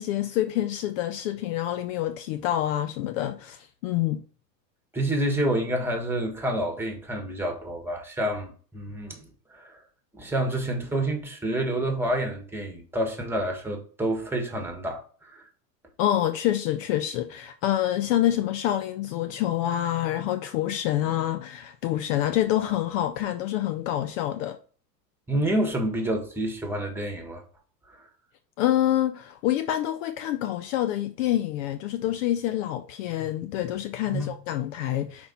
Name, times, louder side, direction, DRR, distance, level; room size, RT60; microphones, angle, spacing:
voice 1, 0.0-4.2 16.0-24.6 28.6-35.3, left 12 dB, 50° left, 0.5 m, -27 dB
voice 2, 4.9-9.2 9.5-9.8 10.1-15.4 25.3-27.4 34.1-34.3, right 1 dB, 5° right, 1.5 m, -28 dB
5.5 x 4.3 x 4.2 m
hypercardioid pair, 105°, 50 cm